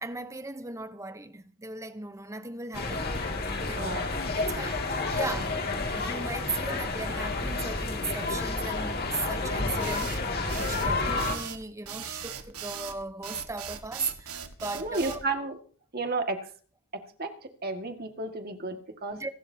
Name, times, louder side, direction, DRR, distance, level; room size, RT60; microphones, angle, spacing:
voice 1, 0.0-3.1 3.5-4.0 4.3-5.6 5.9-15.2 19.1-19.3, right 3 dB, 15° right, 0.8 m, -37 dB
sound 1, 2.7-11.4, left 3 dB, 45° left, 2.3 m, -30 dB
voice 2, 3.8-4.1 6.6-6.8 10.8-11.0 14.7-15.6 15.9-16.4 17.2-17.3 17.6-19.2, right 3 dB, 45° right, 1.9 m, -32 dB
sound 2, 9.8-15.2, right 8 dB, 80° right, 1.7 m, -39 dB
26.5 x 12.5 x 2.8 m
head